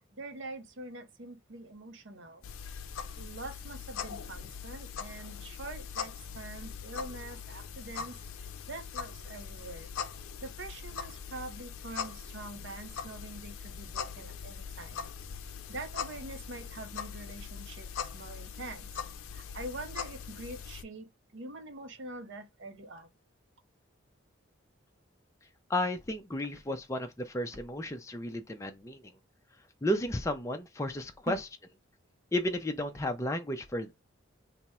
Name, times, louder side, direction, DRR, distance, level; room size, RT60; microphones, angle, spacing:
voice 1, 0.2-2.4 3.2-8.2 8.7-9.9 10.4-15.0 15.7-17.9 18.1-18.9 19.3-23.1 31.3-31.4, right 2 dB, 60° right, 0.6 m, -44 dB
sound 1, 2.4-20.8, left 6 dB, 85° left, 0.5 m, -41 dB
voice 2, 25.7-29.0 29.8-31.4 32.3-33.9, left 1 dB, 15° left, 0.4 m, -33 dB
3.5 x 2.0 x 4.1 m
head